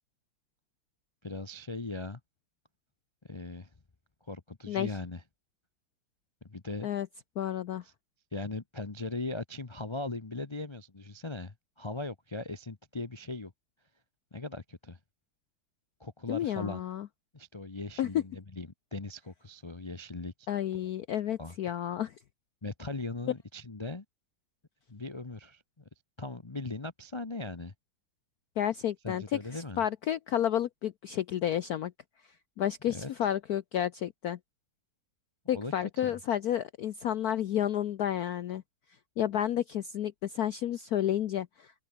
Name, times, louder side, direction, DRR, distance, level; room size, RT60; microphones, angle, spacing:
voice 1, 1.2-2.2 3.2-3.7 4.3-5.2 6.4-6.9 7.8-7.9 8.3-13.5 14.3-15.0 16.0-16.8 17.3-20.5 20.7-20.8 21.4-21.5 22.6-24.0 24.9-25.6 26.2-27.7 29.0-29.8 32.9-33.1 35.5-36.2, left 2 dB, 35° left, 0.4 m, -39 dB
voice 2, 7.4-7.8 16.3-17.1 18.0-18.1 20.5-22.1 28.6-29.2 29.5-31.9 32.6-34.4 35.5-38.6 39.2-41.7, left 10 dB, 65° left, 1.0 m, -31 dB
open air
omnidirectional pair, 2.2 m